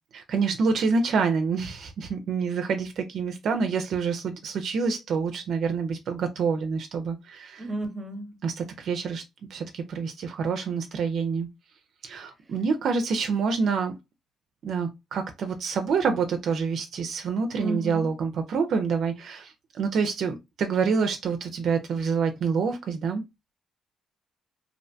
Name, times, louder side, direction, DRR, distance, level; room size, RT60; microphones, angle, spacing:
voice 1, 0.1-7.6 8.4-9.2 9.5-11.5 12.0-13.9 14.6-23.2, right 5 dB, 65° right, 0.4 m, -27 dB
voice 2, 7.6-8.4 17.6-18.1, right 2 dB, 20° right, 0.9 m, -32 dB
2.5 x 2.1 x 2.5 m
cardioid pair, 90°, 0 cm